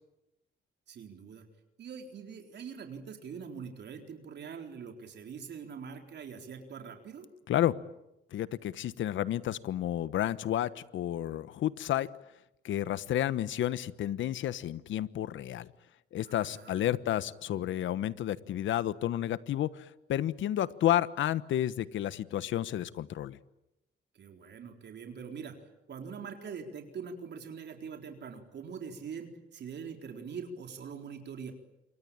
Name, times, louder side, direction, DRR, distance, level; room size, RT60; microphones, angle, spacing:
voice 1, 0.9-1.5 1.8-7.3 16.3-16.9 24.1-25.6 25.9-31.5, right 6 dB, 60° right, 4 dB, 4.1 m, -43 dB
voice 2, 8.3-12.1 12.6-15.7 16.1-23.4, left 12 dB, 75° left, 16 dB, 1.2 m, -31 dB
28.0 x 24.0 x 8.9 m, 0.90 s
cardioid pair, 90°, 20 cm